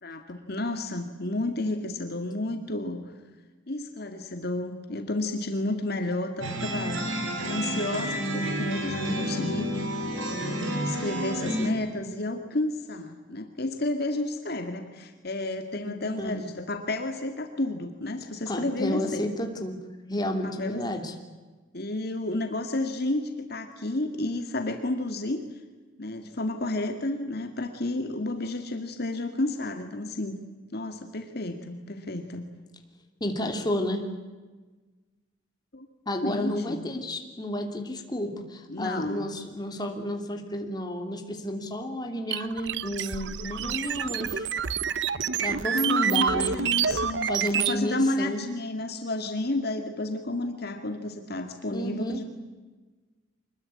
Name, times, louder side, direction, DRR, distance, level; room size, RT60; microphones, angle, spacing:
voice 1, 0.0-3.0 3.7-9.7 10.3-19.3 20.4-20.9 21.7-25.4 26.0-30.4 30.7-32.5 35.7-35.9 36.2-36.8 38.7-39.3 45.6-52.2, left 2 dB, 55° left, 6 dB, 2.1 m, -31 dB
sound 1, 6.4-11.7, right 1 dB, 80° right, 5.8 m, -30 dB
voice 2, 15.8-16.5 18.5-19.8 20.1-21.1 33.2-34.0 36.1-44.5 45.4-46.5 47.3-48.4 51.7-52.2, left 1 dB, 20° left, 3 dB, 3.0 m, -31 dB
sound 2, 42.3-47.8, right 7 dB, 60° right, 0.9 m, -28 dB
25.0 x 21.5 x 9.8 m, 1.3 s
head